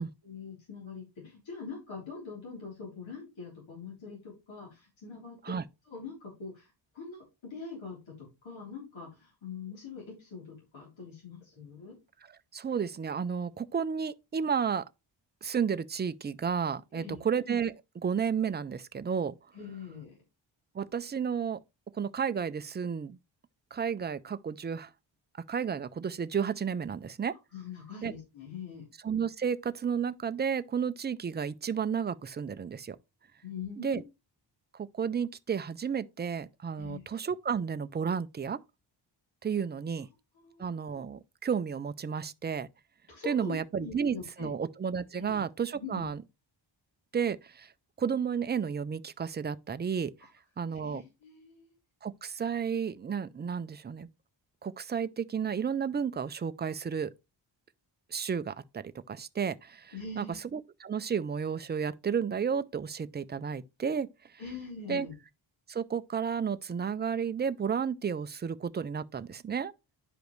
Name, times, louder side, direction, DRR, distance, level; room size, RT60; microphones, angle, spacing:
voice 1, 0.2-5.6 5.9-12.0 16.9-17.2 19.5-20.2 27.5-28.9 33.4-34.0 36.8-37.0 40.4-40.8 43.1-44.5 45.1-45.4 45.8-46.1 50.2-50.3 50.7-51.7 59.9-60.3 64.4-65.1, left 5 dB, 75° left, 3.7 m, -43 dB
voice 2, 12.5-14.9 15.4-19.3 20.7-21.6 21.9-23.2 23.7-24.9 25.5-27.3 28.0-28.1 29.0-33.0 33.8-34.0 34.8-38.6 39.4-40.1 40.6-42.7 43.3-46.2 47.1-47.7 48.0-50.1 50.6-51.0 52.0-54.1 54.6-57.1 58.1-60.3 60.5-64.1 64.9-65.1 65.7-69.7, right 7 dB, 25° right, 0.4 m, -32 dB
10.5 x 5.1 x 3.1 m
wide cardioid pair, 130°, 46 cm